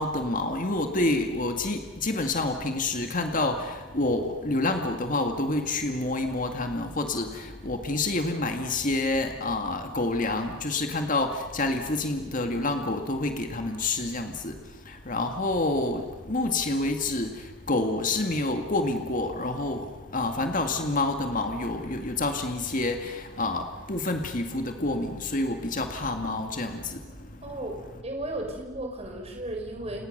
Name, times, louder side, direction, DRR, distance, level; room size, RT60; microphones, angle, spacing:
voice 1, 0.0-27.5, left 2 dB, 40° left, 5 dB, 2.0 m, -28 dB
voice 2, 27.4-30.1, right 1 dB, 30° right, 2 dB, 4.9 m, -35 dB
30.0 x 28.5 x 6.7 m, 1.3 s
head